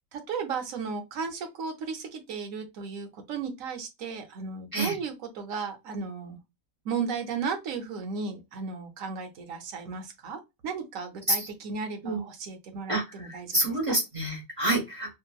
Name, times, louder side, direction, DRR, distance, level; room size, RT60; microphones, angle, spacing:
voice 1, 0.1-6.4 6.8-14.0, right 5 dB, 80° right, 1.1 m, -35 dB
voice 2, 12.9-15.2, right 1 dB, 25° right, 1.1 m, -28 dB
2.8 x 2.5 x 2.3 m
omnidirectional pair, 1.4 m